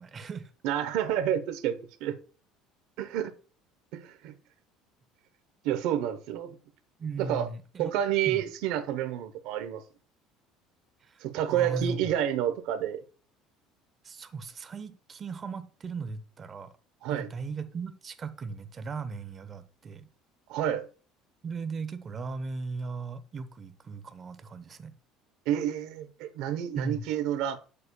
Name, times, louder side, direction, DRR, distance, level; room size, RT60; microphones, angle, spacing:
voice 1, 0.0-0.5 7.0-7.9 8.3-8.4 11.0-11.2 11.5-12.1 14.0-16.7 17.1-20.1 21.4-24.9 26.7-27.0, right 4 dB, 25° right, 0.7 m, -37 dB
voice 2, 0.6-2.2 3.0-3.3 3.9-4.3 5.6-6.6 7.2-7.5 7.8-9.8 11.2-13.0 17.0-17.3 20.5-20.8 25.5-27.6, right 10 dB, 70° right, 0.8 m, -29 dB
8.4 x 6.7 x 2.2 m
cardioid pair, 150°, 0 cm